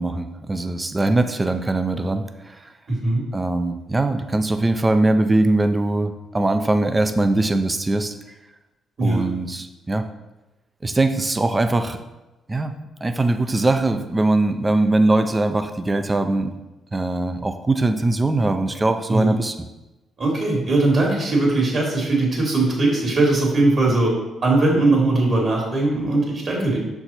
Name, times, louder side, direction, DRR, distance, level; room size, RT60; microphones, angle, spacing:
voice 1, 0.0-2.6 3.3-8.1 9.0-10.0 10.8-12.0 12.5-12.7 13.0-16.5 16.9-19.5, right 2 dB, 20° right, 8 dB, 0.5 m, -21 dB
voice 2, 2.9-3.2 9.0-9.2 19.1-19.3 20.2-24.1 24.4-26.8, right 2 dB, 50° right, -2 dB, 2.5 m, -19 dB
6.6 x 4.5 x 4.3 m, 1.0 s
cardioid pair, 90°, 0 cm